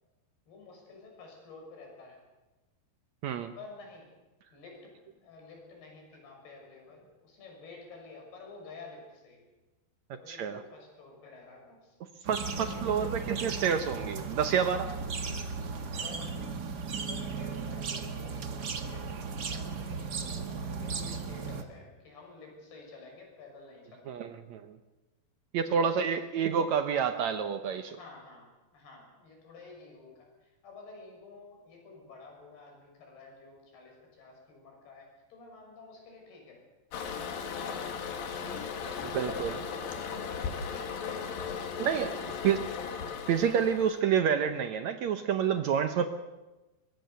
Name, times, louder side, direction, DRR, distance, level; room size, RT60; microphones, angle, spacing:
voice 1, 0.5-2.2 3.6-4.1 4.5-9.4 10.2-12.0 12.4-13.2 15.3-15.4 15.8-16.4 17.1-18.4 18.8-24.4 25.7-26.4 27.9-36.6 37.0-41.0 41.6-42.8, left 3 dB, 90° left, 1 dB, 8.2 m, -51 dB
voice 2, 3.2-3.5 10.3-10.6 12.3-14.9 24.1-24.8 25.5-28.0 39.1-39.6 41.8-42.1 42.4-42.6 43.3-46.1, right 7 dB, 75° right, 8 dB, 1.6 m, -28 dB
sound 1, 12.2-21.6, right 4 dB, 55° right, 1.1 m, -36 dB
Toilet flush, 36.9-44.0, left 6 dB, 70° left, 3.6 m, -37 dB
23.5 x 22.0 x 6.9 m, 1.1 s
omnidirectional pair, 4.4 m